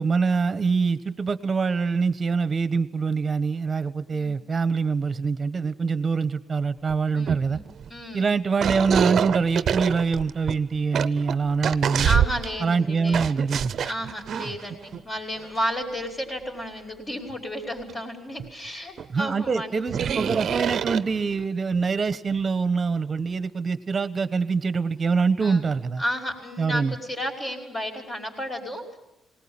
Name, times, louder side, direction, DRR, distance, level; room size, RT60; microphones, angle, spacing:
voice 1, 0.0-7.6 8.1-12.1 12.6-13.7 19.1-26.0 26.6-26.9, right 5 dB, 35° right, 13 dB, 1.1 m, -24 dB
sound 1, 6.9-7.0 7.3-8.0 8.6-12.6 13.1-15.0 15.4-15.6 17.9-18.0 18.4-18.5 19.0-19.1 19.9-21.4, right 8 dB, 60° right, 0.7 m, -26 dB
voice 2, 7.1-8.2 12.0-13.3 13.8-19.9 25.4-25.7 26.0-29.0, equal, 30° left, 1 dB, 5.3 m, -32 dB
20.0 x 19.0 x 8.8 m, 0.90 s
cardioid pair, 90°, 0 cm